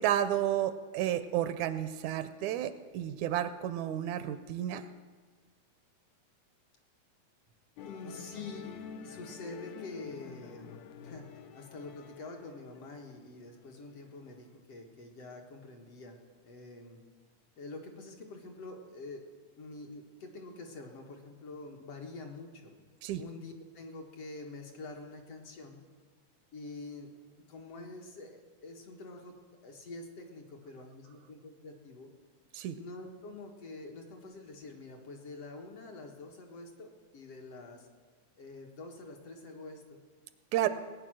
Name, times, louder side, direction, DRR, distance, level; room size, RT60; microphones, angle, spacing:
voice 1, 0.0-4.8 23.0-23.2 32.5-32.8 40.5-40.7, right 12 dB, 80° right, 11 dB, 1.9 m, -31 dB
Musical instrument, 7.8-14.4, left 7 dB, 75° left, 2.0 m, -48 dB
voice 2, 7.8-11.3 11.5-16.2 16.4-17.0 17.6-19.2 19.6-22.7 23.2-25.8 26.5-27.1 27.5-29.3 29.6-32.1 32.8-37.9 38.4-40.0 40.6-40.7, left 2 dB, 60° left, 1 dB, 2.2 m, -46 dB
19.0 x 9.2 x 6.2 m, 1.5 s
omnidirectional pair, 3.5 m